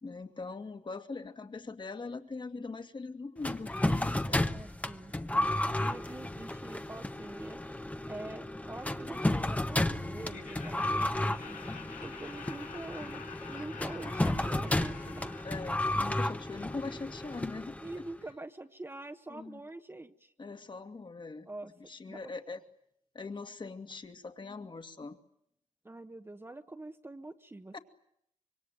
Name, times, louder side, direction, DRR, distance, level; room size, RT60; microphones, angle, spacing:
voice 1, 0.0-4.4 15.4-18.0 19.3-19.6 20.4-21.5 21.8-22.6 23.1-25.2 27.7-27.8, left 3 dB, 40° left, 8 dB, 2.2 m, -41 dB
sound 1, 3.4-18.1, left 1 dB, 10° left, 1.2 m, -33 dB
voice 2, 4.2-7.6 8.1-11.6 12.0-15.3 17.8-20.3 21.5-21.7 22.1-22.3 25.8-27.7, right 2 dB, 20° right, 6 dB, 1.3 m, -45 dB
Laughter, 10.3-17.2, left 7 dB, 85° left, 2.6 m, -49 dB
26.0 x 23.5 x 9.3 m, 0.74 s
cardioid pair, 85°, 13 cm